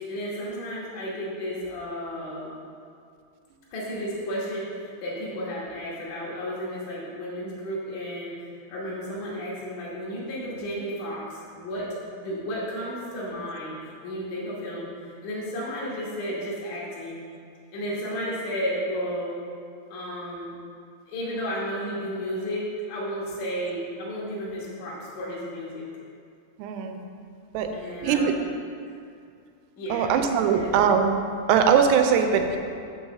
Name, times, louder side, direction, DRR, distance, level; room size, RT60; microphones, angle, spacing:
voice 1, 0.1-2.5 3.7-11.9 12.2-13.8 14.0-14.9 15.2-17.2 17.7-19.4 19.9-20.5 21.1-25.8 27.7-28.7 29.8-30.7, equal, 60° left, -7 dB, 2.4 m, -33 dB
voice 2, 26.6-27.0 27.5-27.7 28.0-28.3 29.9-31.2 31.5-32.6, right 7 dB, 85° right, 5 dB, 2.7 m, -21 dB
6.0 x 4.7 x 6.6 m, 2.3 s
omnidirectional pair, 4.7 m